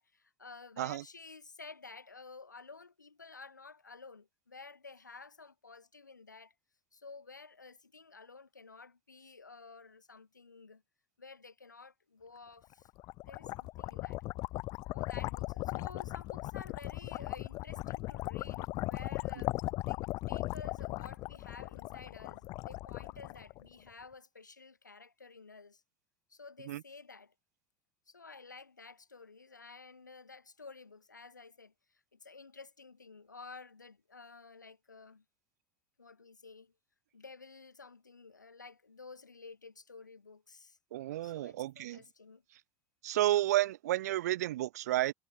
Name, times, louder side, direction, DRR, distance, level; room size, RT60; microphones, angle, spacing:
voice 1, 0.0-6.5 6.9-10.8 11.2-12.9 13.3-14.2 14.8-19.5 19.8-20.0 20.3-25.8 26.3-27.3 28.1-35.2 36.0-36.7 37.1-40.8 41.2-42.4, left 4 dB, 80° left, 2.2 m, -52 dB
sound 1, 12.7-23.9, left 20 dB, 40° left, 0.4 m, -38 dB
voice 2, 40.9-42.0 43.0-45.1, right 14 dB, 65° right, 0.8 m, -31 dB
figure-of-eight pair, 75°, 10 cm